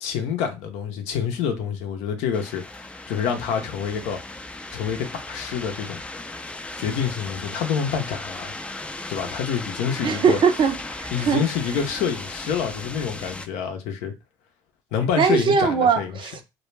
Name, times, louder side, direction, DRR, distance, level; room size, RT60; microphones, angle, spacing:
voice 1, 0.0-4.2 4.7-6.0 6.8-8.6 9.1-10.4 11.1-14.1 14.9-16.2, left 7 dB, 75° left, 0.6 m, -27 dB
sound 1, 2.3-13.5, left 2 dB, 10° left, 0.3 m, -36 dB
voice 2, 10.0-11.5 15.2-16.4, right 6 dB, 45° right, 0.5 m, -21 dB
2.2 x 2.1 x 3.1 m
hypercardioid pair, 65°, 11 cm